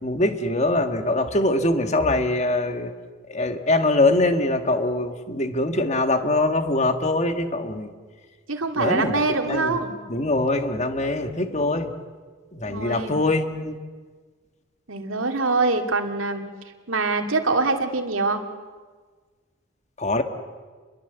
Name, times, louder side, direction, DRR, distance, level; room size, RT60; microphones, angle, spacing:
voice 1, 0.0-2.9 3.3-7.9 8.8-9.2 9.5-9.8 10.1-11.9 12.5-13.8 20.0-20.2, left 2 dB, 35° left, 7 dB, 1.7 m, -23 dB
voice 2, 8.5-9.9 12.7-13.2 14.9-16.4 16.9-18.4, right 3 dB, 80° right, 5 dB, 2.5 m, -24 dB
29.5 x 22.5 x 8.0 m, 1.5 s
head